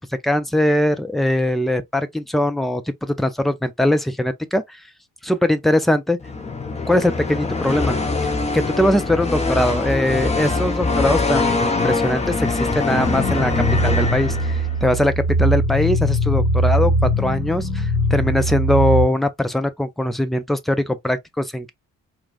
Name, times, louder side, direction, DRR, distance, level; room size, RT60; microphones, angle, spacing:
voice 1, 0.2-4.8 5.2-6.2 6.9-8.0 8.5-13.5 13.8-21.7, left 1 dB, ahead, 0.4 m, -21 dB
sound 1, 6.2-14.9, left 3 dB, 15° left, 0.9 m, -23 dB
sound 2, 12.9-19.1, equal, 65° left, 2.2 m, -21 dB
4.4 x 2.3 x 2.3 m
figure-of-eight pair, 40°, 40 cm